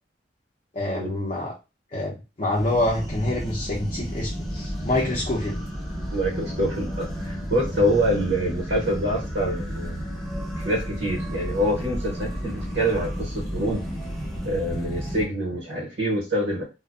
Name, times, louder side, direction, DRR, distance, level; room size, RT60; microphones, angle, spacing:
voice 1, 0.7-1.5 1.9-5.6, left 1 dB, 35° left, -4 dB, 0.6 m, -26 dB
sound 1, 2.5-15.2, equal, ahead, 0.7 m, -32 dB
voice 2, 6.1-10.1 10.6-13.8 14.4-16.6, equal, 85° right, -2 dB, 0.9 m, -26 dB
2.4 x 2.1 x 2.3 m, 0.28 s
head